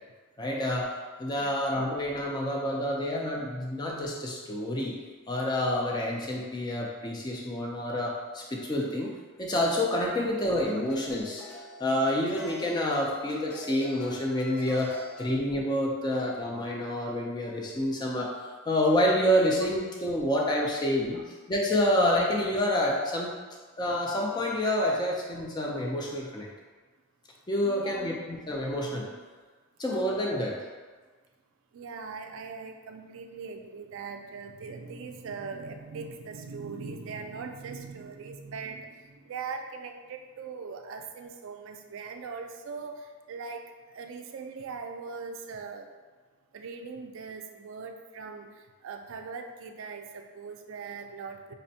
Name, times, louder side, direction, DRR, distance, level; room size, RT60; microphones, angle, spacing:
voice 1, 0.4-0.9 1.2-5.0 5.3-11.4 11.8-14.9 15.2-18.3 18.7-23.3 23.8-26.5 27.5-29.1 29.8-30.6, left 1 dB, 20° left, -2 dB, 0.3 m, -28 dB
sound 1, 10.9-15.4, left 3 dB, 80° left, 0.6 m, -45 dB
voice 2, 27.6-28.0 31.7-45.9 46.5-51.5, right 5 dB, 60° right, 5 dB, 0.3 m, -40 dB
5.1 x 2.1 x 2.7 m, 1.4 s
head